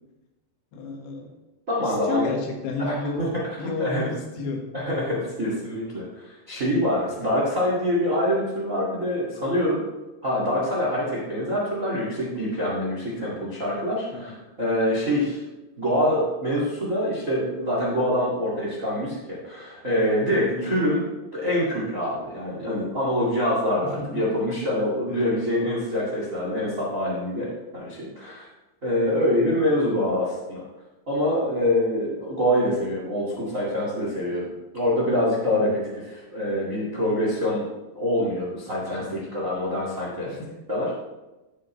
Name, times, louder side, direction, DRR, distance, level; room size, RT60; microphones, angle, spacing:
voice 1, 0.7-1.3 1.8-3.3 3.6-4.7 14.1-14.4 20.4-20.7 23.8-24.2 25.1-25.4 35.5-35.8 39.0-39.3 40.3-40.5, left 3 dB, 80° left, 1 dB, 3.7 m, -32 dB
voice 2, 1.7-2.2 2.8-3.3 3.8-4.1 4.7-9.9 10.2-15.4 15.8-21.0 21.3-28.5 28.8-30.6 31.1-35.7 36.3-37.6 37.9-40.3 40.7-41.0, left 1 dB, 45° right, -4 dB, 1.0 m, -25 dB
14.5 x 6.5 x 3.1 m, 1.1 s
omnidirectional pair, 5.1 m